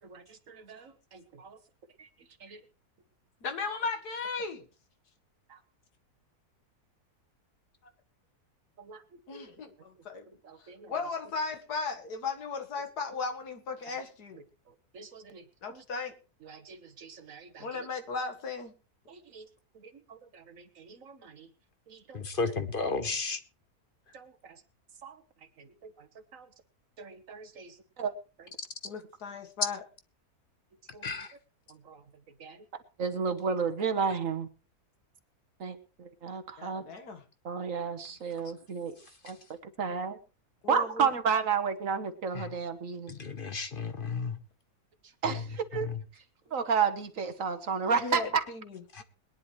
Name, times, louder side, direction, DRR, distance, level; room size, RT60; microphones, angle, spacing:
voice 1, 0.3-1.6 2.4-2.6 5.5-5.6 8.8-9.0 9.3-9.4 10.4-10.9 14.3-14.4 14.9-15.4 15.7-15.8 16.4-17.7 19.1-19.4 20.1-21.5 21.9-22.2 24.1-24.3 25.0-25.2 25.6-25.9 26.3-26.5 27.0-28.1 28.4-28.5 30.9-31.0 31.9-32.0 32.4-32.6 33.0-34.5 35.6-36.8 37.4-38.9 39.2-39.4 39.8-40.2 40.7-43.1 45.2-45.9 46.5-48.4, right 6 dB, 60° right, 8 dB, 1.5 m, -32 dB
voice 2, 3.4-4.6 9.3-9.7 10.1-10.2 10.9-14.4 15.6-16.1 17.6-18.7 28.8-29.8 36.6-37.2 40.6-41.1 48.0-49.0, left 4 dB, 80° left, 6 dB, 2.0 m, -36 dB
voice 3, 22.1-23.4 31.0-31.3 42.3-42.5 43.1-44.4 45.2-45.4 45.8-46.0 48.9-49.0, left 4 dB, 40° left, 10 dB, 1.0 m, -33 dB
21.5 x 10.0 x 3.1 m, 0.34 s
omnidirectional pair, 1.6 m